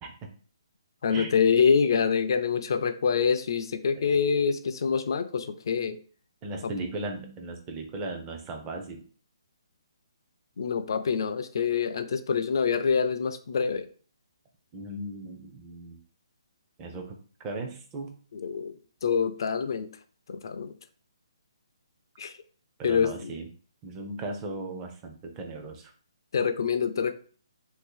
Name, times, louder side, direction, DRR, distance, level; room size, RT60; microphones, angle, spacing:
voice 1, 1.0-6.0 6.6-6.7 10.6-13.9 18.3-19.9 20.3-20.7 22.2-22.3 22.8-23.3 26.3-27.1, left 6 dB, 50° left, 0.3 m, -26 dB
voice 2, 6.4-9.0 14.7-16.0 16.8-18.2 22.8-23.5 23.8-25.9, right 2 dB, 15° right, 0.4 m, -37 dB
2.6 x 2.4 x 3.7 m
hypercardioid pair, 165°, 3 cm